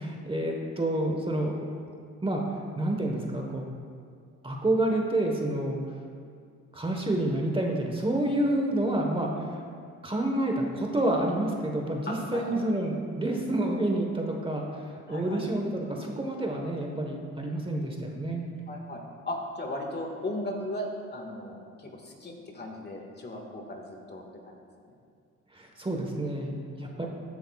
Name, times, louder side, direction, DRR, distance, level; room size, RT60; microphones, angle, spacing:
voice 1, 0.0-1.7 2.2-3.7 4.4-5.8 6.7-9.6 10.0-18.5 25.5-27.1, right 1 dB, 15° right, 1 dB, 1.2 m, -29 dB
voice 2, 12.1-12.6 15.1-15.4 18.7-24.6 24.8-24.9 26.8-27.1, left 1 dB, 35° left, 1 dB, 1.7 m, -37 dB
14.5 x 10.0 x 2.3 m, 2.2 s
cardioid pair, 90°, 30 cm